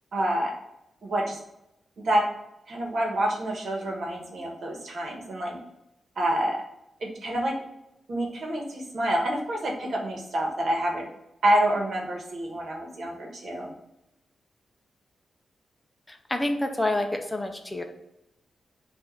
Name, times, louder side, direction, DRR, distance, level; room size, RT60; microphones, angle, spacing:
voice 1, 0.1-0.5 1.0-1.4 2.0-2.2 2.7-5.6 6.2-6.6 7.0-7.5 8.1-11.0 11.4-13.7, right 1 dB, 60° right, 0 dB, 1.2 m, -27 dB
voice 2, 16.1-17.8, left 1 dB, 10° left, 5 dB, 0.5 m, -28 dB
4.4 x 2.5 x 4.5 m, 0.86 s
wide cardioid pair, 150°, 0 cm